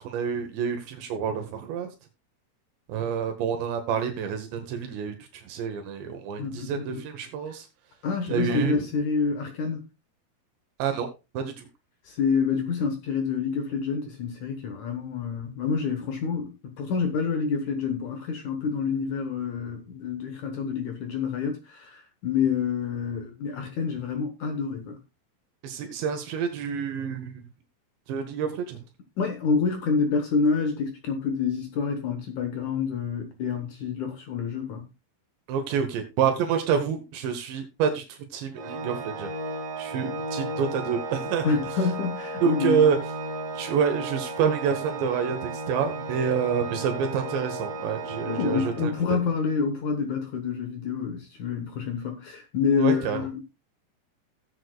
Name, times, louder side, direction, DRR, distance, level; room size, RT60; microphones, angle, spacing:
voice 1, 0.0-1.9 2.9-7.7 8.3-8.8 10.8-11.1 11.4-11.7 25.6-27.4 28.1-28.8 35.5-39.3 39.8-41.5 42.4-43.0 43.6-49.2 52.8-53.2, right 7 dB, 80° right, 3.4 m, -28 dB
voice 2, 6.4-7.0 7.5-7.6 8.0-9.8 12.0-25.0 29.2-34.9 41.4-42.9 48.3-53.4, left 5 dB, 70° left, 1.9 m, -27 dB
Organ, 38.5-49.3, right 2 dB, 60° right, 2.0 m, -34 dB
17.0 x 7.9 x 2.3 m
omnidirectional pair, 5.1 m